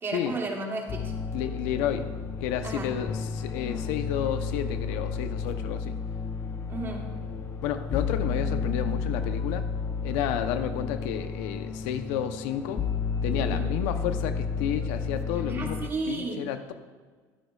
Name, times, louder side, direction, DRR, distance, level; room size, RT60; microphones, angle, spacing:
voice 1, 0.0-1.1 2.6-2.9 6.7-7.1 13.4-13.7 15.5-16.5, right 3 dB, 30° right, 0 dB, 2.5 m, -33 dB
sound 1, 0.9-15.9, left 5 dB, 35° left, 0.8 m, -32 dB
voice 2, 1.3-6.0 7.6-9.7 10.0-12.9 13.2-15.8 16.1-16.7, left 9 dB, 85° left, 8 dB, 0.8 m, -31 dB
24.0 x 8.2 x 2.4 m, 1.5 s
supercardioid pair, 105°, 8 cm